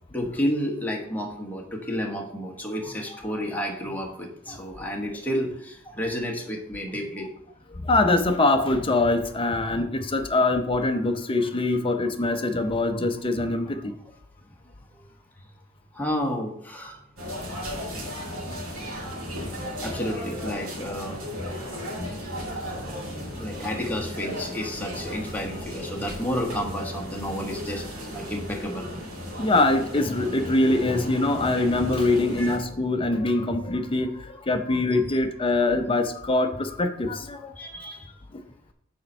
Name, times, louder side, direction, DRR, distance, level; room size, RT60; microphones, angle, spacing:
voice 1, 0.1-7.3 15.9-17.0 19.5-21.8 23.4-28.9 32.4-32.6 37.6-38.1, equal, 10° left, 0 dB, 1.2 m, -31 dB
voice 2, 7.8-13.9 29.4-37.4, left 2 dB, 25° left, 6 dB, 0.7 m, -23 dB
sound 1, 17.2-32.6, equal, 75° right, 2.5 m, -35 dB
6.6 x 4.4 x 5.4 m, 0.73 s
head